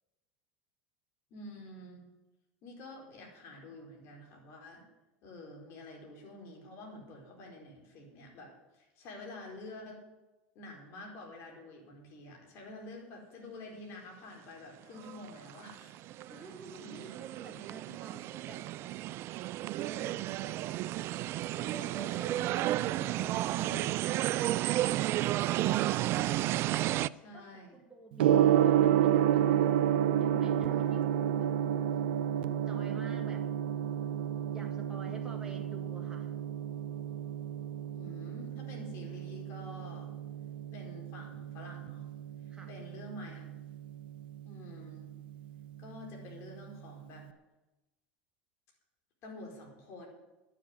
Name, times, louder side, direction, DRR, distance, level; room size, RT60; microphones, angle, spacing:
voice 1, 1.3-2.0 2.6-4.8 5.2-10.0 10.5-16.1 16.3-16.5 16.8-17.2 26.6-27.8 37.9-40.1 40.7-42.1 42.7-43.5 44.4-45.1 45.8-47.3 49.2-50.1, left 2 dB, 55° left, 0 dB, 4.2 m, -48 dB
sound 1, 15.0-27.1, right 15 dB, 50° right, 0.4 m, -32 dB
voice 2, 16.2-18.6 19.8-20.7 21.6-24.1 27.3-31.5 32.7-33.5 34.5-36.3 42.5-42.7, right 2 dB, 15° right, 1 dB, 1.7 m, -49 dB
Gong, 28.2-47.2, right 10 dB, 80° right, 0.7 m, -31 dB
11.0 x 7.6 x 9.5 m, 1.0 s
hypercardioid pair, 90°, 5 cm